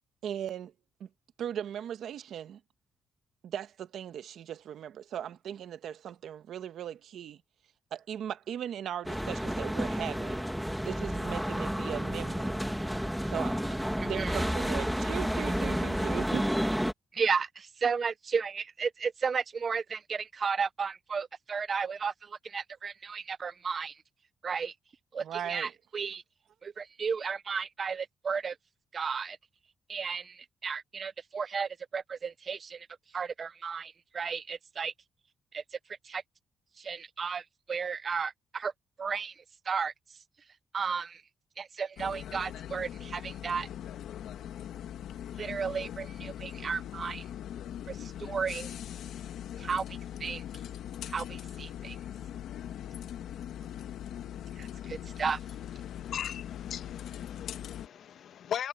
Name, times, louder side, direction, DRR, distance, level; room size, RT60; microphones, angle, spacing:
voice 1, 0.2-0.7 1.0-1.1 1.4-2.6 3.4-7.4 7.9-10.4 10.8-12.6 13.2-13.6 14.0-16.5 25.2-25.7, right 9 dB, 65° right, 1.2 m, -38 dB
sound 1, 9.0-16.9, equal, ahead, 1.5 m, -31 dB
voice 2, 14.0-14.5 17.1-24.0 24.4-24.7 25.1-26.2 26.6-28.6 28.9-29.4 29.9-32.9 33.1-34.9 35.5-35.6 36.0-36.2 36.8-38.7 39.0-39.9 40.7-41.2 41.6-43.7 45.4-47.2 47.9-48.8 49.6-50.4 51.1-52.0 54.6-55.4, right 5 dB, 35° right, 0.5 m, -34 dB
sound 2, 42.0-57.9, left 10 dB, 80° left, 1.4 m, -41 dB
voice 3, 55.8-58.7, left 9 dB, 60° left, 1.2 m, -39 dB
cardioid pair, 165°, 0 cm